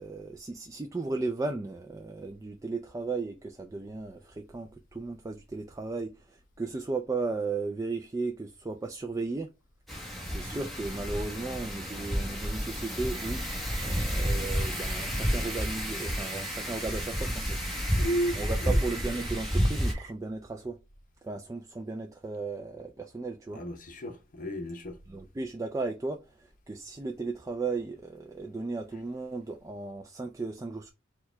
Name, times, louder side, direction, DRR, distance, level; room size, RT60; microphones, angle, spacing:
voice 1, 0.0-9.5 10.3-13.4 13.8-17.6 18.4-20.8 21.2-23.6 25.1-30.9, right 3 dB, 15° right, 0.3 m, -35 dB
Wind, 9.9-19.9, equal, ahead, 1.2 m, -31 dB
sound 1, 13.1-20.1, right 6 dB, 80° right, 0.9 m, -47 dB
voice 2, 17.9-18.8 23.5-25.0, equal, 45° left, 0.7 m, -33 dB
4.6 x 2.3 x 4.3 m
head